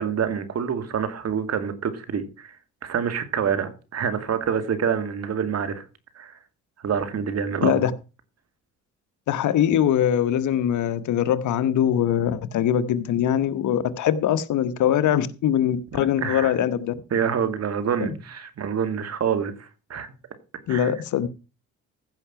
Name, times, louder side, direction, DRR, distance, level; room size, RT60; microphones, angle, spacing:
voice 1, 0.0-2.6 2.8-5.8 6.2-6.4 6.8-7.8 16.2-16.5 17.1-20.1 20.7-20.9, right 7 dB, 55° right, 2.3 m, -27 dB
voice 2, 9.3-16.9 18.0-18.1 20.7-21.3, left 10 dB, 75° left, 1.1 m, -22 dB
15.5 x 5.8 x 5.7 m
cardioid pair, 90°, 30 cm